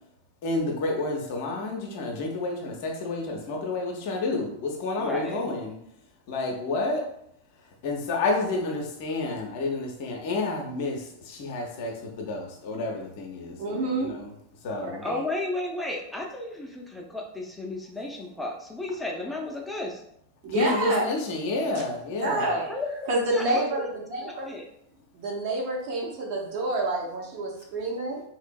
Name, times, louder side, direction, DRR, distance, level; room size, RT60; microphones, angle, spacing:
voice 1, 0.4-5.7 6.3-7.0 7.8-14.2 14.6-15.0 20.5-22.5, left 2 dB, 50° left, 1 dB, 0.6 m, -30 dB
voice 2, 5.0-5.4 15.0-20.0 22.7-23.6 24.2-24.6, left 2 dB, 5° left, 0 dB, 0.5 m, -33 dB
voice 3, 13.6-14.2 14.7-15.2 20.4-21.1 22.2-22.7 23.1-24.5 25.1-28.2, right 2 dB, 45° right, -2 dB, 0.7 m, -28 dB
3.0 x 2.5 x 2.2 m, 0.74 s
figure-of-eight pair, 90°, 0 cm